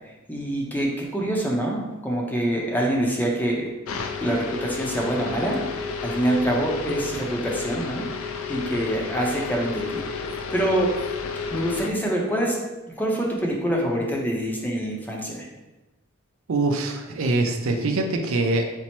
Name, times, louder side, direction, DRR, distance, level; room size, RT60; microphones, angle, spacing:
voice 1, 0.3-3.7 4.2-5.6 6.0-8.0 8.5-10.0 10.5-11.0 11.5-12.5 13.0-15.5, right 1 dB, 10° left, -2 dB, 0.6 m, -25 dB
sound 1, 3.9-11.9, left 5 dB, 85° left, 0.4 m, -32 dB
voice 2, 16.5-18.7, right 2 dB, 75° right, 4 dB, 0.5 m, -23 dB
4.3 x 2.0 x 4.3 m, 1.1 s
head